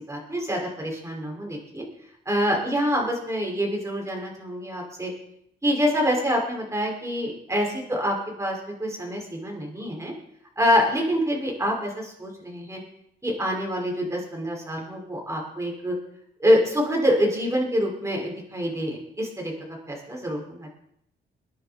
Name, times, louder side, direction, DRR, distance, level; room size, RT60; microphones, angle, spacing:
voice 1, 0.1-1.8 2.3-5.1 5.6-10.1 10.6-12.8 13.2-15.9 16.4-19.5 19.9-20.7, equal, 15° right, -1 dB, 6.0 m, -26 dB
22.0 x 10.5 x 4.5 m, 0.74 s
cardioid pair, 90°, 20 cm